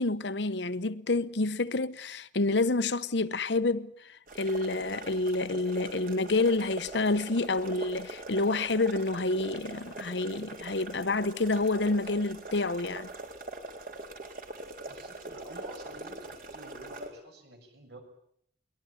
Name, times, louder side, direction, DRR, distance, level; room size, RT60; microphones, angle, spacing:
voice 1, 0.0-13.1, left 2 dB, 70° left, 1.0 m, -28 dB
sound 1, 4.3-17.1, right 2 dB, 50° right, 4.1 m, -43 dB
voice 2, 14.9-18.0, equal, 65° right, 6.5 m, -48 dB
22.0 x 20.5 x 9.8 m
head